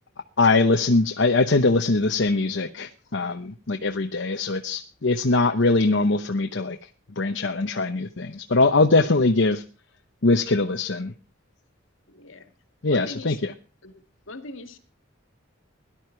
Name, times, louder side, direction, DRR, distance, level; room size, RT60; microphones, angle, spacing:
voice 1, 0.4-6.8 7.2-9.6 10.2-11.1 12.8-13.5, left 3 dB, 65° left, 5 dB, 0.9 m, -22 dB
voice 2, 12.1-12.5 12.9-13.4 13.8-14.0 14.3-14.8, left 2 dB, 80° left, 8 dB, 2.1 m, -40 dB
18.0 x 11.5 x 4.5 m, 0.36 s
head